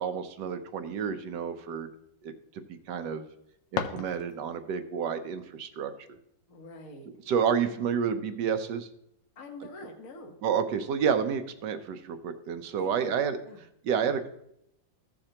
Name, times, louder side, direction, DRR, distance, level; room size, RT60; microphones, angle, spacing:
voice 1, 0.0-1.9 2.2-2.3 2.7-3.3 3.7-5.9 7.3-8.9 10.4-13.4 13.8-14.3, right 7 dB, 70° right, 10 dB, 1.3 m, -29 dB
sound 1, 3.2-4.7, left 8 dB, 70° left, 1.3 m, -36 dB
voice 2, 6.5-7.1 9.3-10.4 12.8-13.2 13.5-13.6, left 2 dB, 50° left, 2 dB, 1.5 m, -45 dB
15.0 x 6.6 x 2.9 m, 0.78 s
omnidirectional pair, 2.1 m